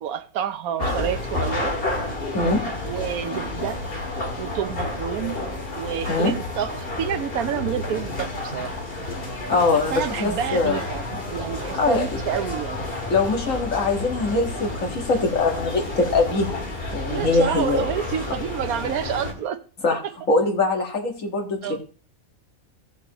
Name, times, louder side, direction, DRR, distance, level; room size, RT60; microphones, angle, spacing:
voice 1, 0.0-1.7 2.9-3.8 4.4-5.4 5.7-6.7 7.0-8.7 9.7-12.8 17.1-19.6 21.6-21.8, right 9 dB, 85° right, 11 dB, 1.2 m, -28 dB
sound 1, 0.8-19.3, left 2 dB, 40° left, 2.0 m, -30 dB
voice 2, 9.5-10.8 11.7-12.0 13.1-16.6 16.9-17.8 19.8-20.0 20.3-21.8, left 3 dB, 65° left, 1 dB, 2.1 m, -22 dB
16.5 x 7.2 x 3.0 m, 0.38 s
omnidirectional pair, 1.5 m